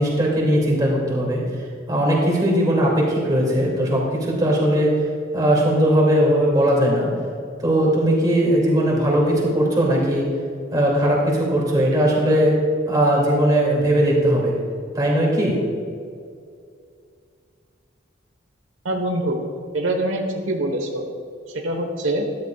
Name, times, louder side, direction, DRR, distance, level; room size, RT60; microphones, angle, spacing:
voice 1, 0.0-1.4 1.9-4.9 5.3-7.1 7.6-10.3 10.7-12.5 12.9-14.5 14.9-15.6, right 1 dB, 20° right, -3 dB, 2.5 m, -19 dB
voice 2, 18.8-19.4 19.7-21.0 21.5-22.3, right 1 dB, 85° right, 3 dB, 1.2 m, -24 dB
13.5 x 11.5 x 2.4 m, 2.3 s
head